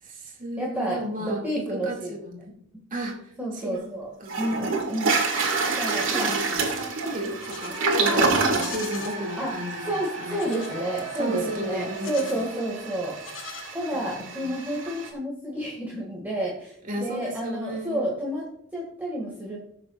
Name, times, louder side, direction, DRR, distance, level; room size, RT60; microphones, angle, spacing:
voice 1, 0.0-2.6 2.9-4.6 5.9-10.5 11.2-12.4 13.9-14.5 16.8-18.0, equal, 45° right, 0 dB, 2.2 m, -34 dB
voice 2, 0.6-2.2 3.4-4.1 4.4-5.2 5.7-6.3 8.1-8.3 9.4-9.5 9.9-13.2 13.7-19.6, right 1 dB, 10° right, -3 dB, 1.9 m, -30 dB
Toilet flush, 3.7-3.8 4.3-15.1, right 4 dB, 90° right, 2.0 m, -29 dB
Livestock farm animals working animals, 7.1-7.9 8.4-9.2 10.3-10.8 11.9-12.5 13.1-14.1, left 6 dB, 90° left, 1.9 m, -42 dB
sound 1, 7.5-13.6, right 2 dB, 20° left, 4.1 m, -40 dB
19.5 x 6.6 x 2.4 m, 0.70 s
head